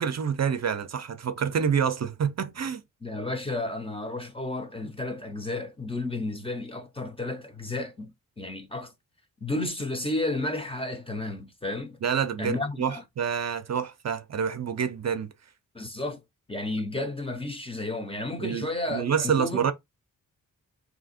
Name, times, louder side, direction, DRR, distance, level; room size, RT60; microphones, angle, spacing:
voice 1, 0.0-2.8 12.0-15.3 18.4-19.7, right 7 dB, 50° right, 0.5 m, -27 dB
voice 2, 3.0-8.9 9.4-12.0 12.4-13.0 15.7-16.2 16.5-19.7, left 2 dB, 15° left, 0.6 m, -32 dB
3.4 x 2.8 x 4.2 m
wide cardioid pair, 165°, 34 cm